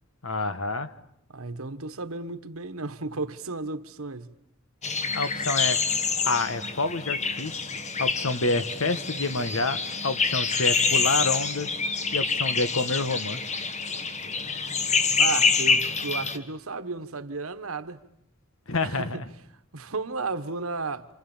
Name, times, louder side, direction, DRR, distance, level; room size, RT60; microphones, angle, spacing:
voice 1, 0.2-0.9 5.1-5.8 6.2-7.6 8.0-11.7 12.1-13.4 18.7-19.2, left 3 dB, 65° left, 1.4 m, -28 dB
voice 2, 1.3-4.3 15.2-18.0 18.8-19.1 19.7-21.1, right 3 dB, 75° right, 1.3 m, -33 dB
sound 1, 4.8-16.4, left 5 dB, 35° left, 1.5 m, -26 dB
28.5 x 27.5 x 7.3 m
head